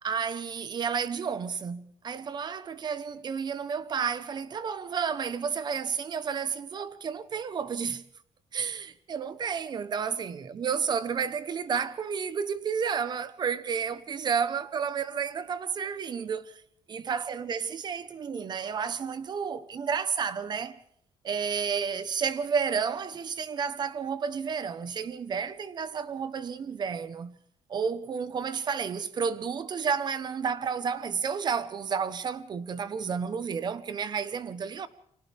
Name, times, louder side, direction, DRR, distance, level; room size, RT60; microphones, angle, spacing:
voice 1, 0.0-8.0 8.5-16.6 16.9-20.8 21.2-27.4 27.7-34.9, right 6 dB, 35° right, 1.1 m, -31 dB
30.0 x 24.5 x 3.6 m
cardioid pair, 180°, 12 cm